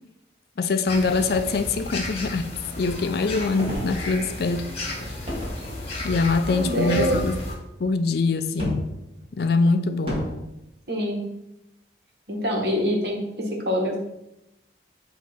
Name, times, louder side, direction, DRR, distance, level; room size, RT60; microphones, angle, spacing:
voice 1, 0.6-2.5 2.8-4.6 6.0-7.4 7.8-8.8 9.4-10.3, left 3 dB, 55° left, 0.4 m, -23 dB
sound 1, 0.9-7.5, left 1 dB, 35° left, 1.2 m, -33 dB
sound 2, 3.6-4.5 5.3-6.3 7.1-7.5 8.6-9.0 10.1-10.4, equal, 30° right, 1.4 m, -32 dB
voice 2, 6.5-7.2 10.9-11.2 12.3-14.0, equal, 60° right, 1.4 m, -25 dB
8.1 x 2.8 x 4.4 m
head